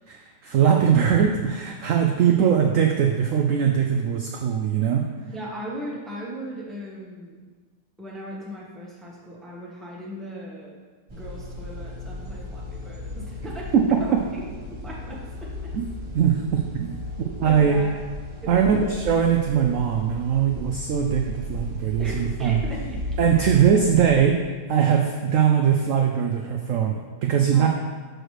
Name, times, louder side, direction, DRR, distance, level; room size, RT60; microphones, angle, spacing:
voice 1, 0.1-5.0 15.7-15.8 16.1-16.9 17.4-17.8 18.5-22.6 23.2-24.3 24.7-27.0 27.2-27.7, right 8 dB, 70° right, 2 dB, 0.7 m, -21 dB
voice 2, 5.3-7.4 8.0-10.7 11.1-15.7 17.2-17.9 18.4-18.9 22.0-23.0 23.5-23.6 27.5-27.7, right 1 dB, ahead, -5 dB, 0.9 m, -38 dB
sound 1, 11.1-24.2, left 1 dB, 45° right, 0.3 m, -35 dB
6.3 x 6.3 x 3.2 m, 1.4 s
omnidirectional pair, 1.8 m